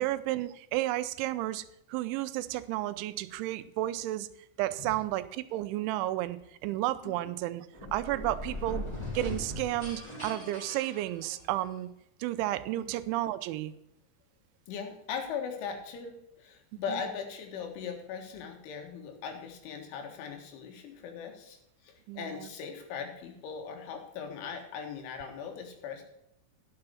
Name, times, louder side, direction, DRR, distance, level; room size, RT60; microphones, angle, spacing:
voice 1, 0.0-1.6 1.9-4.3 4.6-8.8 9.1-11.9 12.2-13.7 22.1-22.5, right 15 dB, 85° right, 13 dB, 3.0 m, -32 dB
sound 1, 7.7-11.7, left 1 dB, 10° left, 2.2 m, -40 dB
voice 2, 14.7-21.6 21.8-26.0, left 6 dB, 85° left, 4 dB, 4.1 m, -39 dB
10.5 x 6.8 x 6.9 m, 0.81 s
omnidirectional pair, 5.4 m